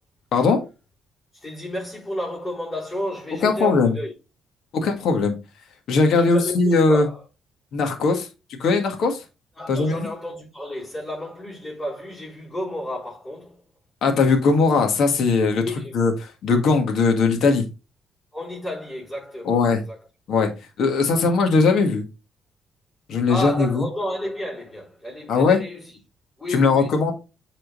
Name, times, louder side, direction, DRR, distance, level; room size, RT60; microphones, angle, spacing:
voice 1, 0.3-0.6 3.4-4.0 4.7-5.4 5.9-7.1 7.7-8.3 8.6-9.2 9.7-10.1 14.0-15.6 15.9-16.1 16.4-17.6 19.5-19.8 20.3-20.5 20.8-22.0 23.1-23.8 25.3-25.6 26.5-27.1, left 4 dB, 75° left, 1.9 m, -19 dB
voice 2, 1.3-4.1 6.1-7.2 9.6-13.6 15.6-15.9 18.3-20.0 23.3-26.0 26.4-27.0, left 1 dB, 20° left, 4.3 m, -32 dB
8.3 x 4.3 x 4.0 m
cardioid pair, 90°, 0 cm